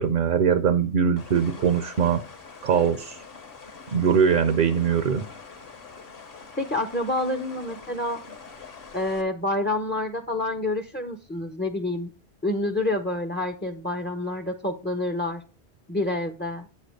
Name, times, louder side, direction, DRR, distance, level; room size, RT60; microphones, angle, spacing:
voice 1, 0.0-2.2 2.6-3.2 3.9-5.2, right 7 dB, 55° right, 8 dB, 0.7 m, -21 dB
sound 1, 1.2-9.2, left 5 dB, 60° left, 1.2 m, -44 dB
voice 2, 6.6-8.2 8.9-12.1 12.4-15.4 15.9-16.7, left 2 dB, 15° left, 6 dB, 0.3 m, -28 dB
8.5 x 3.2 x 6.3 m, 0.34 s
omnidirectional pair, 1.1 m